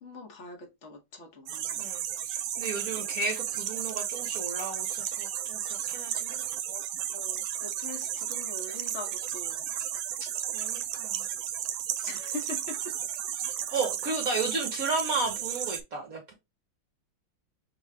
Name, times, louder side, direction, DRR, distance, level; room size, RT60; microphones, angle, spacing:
voice 1, 0.0-1.9 6.7-6.8 7.1-9.7 12.0-12.9 14.3-14.4, left 2 dB, 45° left, 1.1 m, -42 dB
sound 1, 1.5-15.8, right 10 dB, 75° right, 1.3 m, -33 dB
voice 2, 2.3-5.6 5.9-6.4 10.5-11.2 13.4-16.3, right 3 dB, 50° right, 1.2 m, -33 dB
6.4 x 2.3 x 3.2 m
omnidirectional pair, 2.3 m